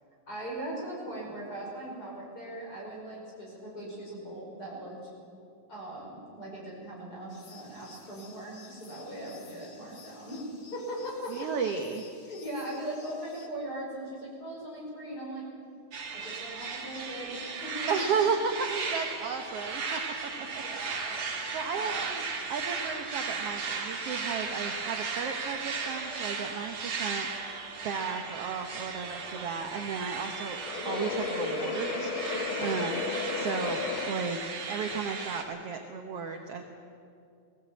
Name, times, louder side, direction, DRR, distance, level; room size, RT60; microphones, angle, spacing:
voice 1, 0.3-5.0 5.7-10.4 10.7-11.3 12.3-15.4 16.1-18.1 20.5-21.3 21.7-22.1, right 1 dB, 25° left, -3 dB, 6.1 m, -39 dB
sound 1, 7.3-13.5, left 5 dB, 50° left, 1.3 m, -54 dB
voice 2, 11.3-12.1 17.9-20.3 21.1-22.2 22.5-30.6 30.8-36.6, right 5 dB, 75° right, 4 dB, 1.4 m, -34 dB
sound 2, 15.9-35.4, right 5 dB, 45° right, 2.4 m, -36 dB
sound 3, 16.2-34.1, left 5 dB, 70° left, 1.2 m, -38 dB
19.0 x 17.0 x 8.7 m, 2.5 s
omnidirectional pair, 4.1 m